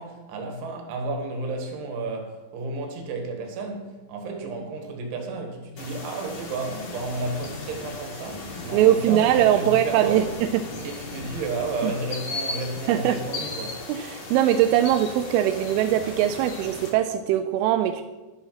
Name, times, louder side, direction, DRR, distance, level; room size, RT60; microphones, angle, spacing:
voice 1, 0.0-10.3 10.8-13.8, right 3 dB, 75° right, 3.9 m, -32 dB
sound 1, 5.8-16.9, left 2 dB, 50° left, 2.4 m, -37 dB
voice 2, 8.7-10.2 11.8-11.9 12.9-13.2 13.9-18.0, right 11 dB, 90° right, 3.1 m, -21 dB
11.5 x 7.0 x 5.7 m
omnidirectional pair, 5.6 m